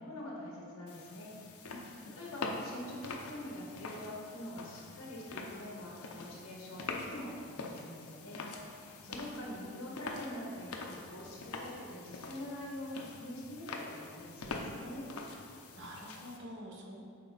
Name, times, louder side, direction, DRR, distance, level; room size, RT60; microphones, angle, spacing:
voice 1, 0.0-8.5 8.8-15.1, left 1 dB, 60° left, -4 dB, 1.8 m, -45 dB
sound 1, 0.9-16.4, left 3 dB, 80° left, 0.7 m, -45 dB
voice 2, 1.7-2.2 9.1-9.7 15.7-17.0, equal, 55° right, 0 dB, 0.9 m, -48 dB
7.5 x 4.6 x 4.1 m, 2.3 s
head